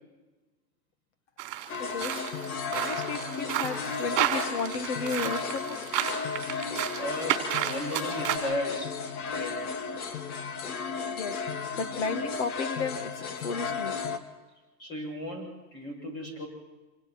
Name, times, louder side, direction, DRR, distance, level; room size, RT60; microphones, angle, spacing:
sound 1, 1.4-8.4, right 12 dB, 30° right, 3.5 m, -32 dB
sound 2, 1.7-14.2, left 5 dB, 65° left, 1.9 m, -34 dB
voice 1, 1.8-2.1 2.7-5.8 11.1-11.4 11.8-14.0, left 5 dB, 45° left, 9 dB, 1.7 m, -34 dB
voice 2, 7.0-9.0 9.3-10.1 14.8-16.5, left 1 dB, 25° left, 1 dB, 7.2 m, -36 dB
28.5 x 27.0 x 4.4 m, 1.2 s
supercardioid pair, 165°, 48 cm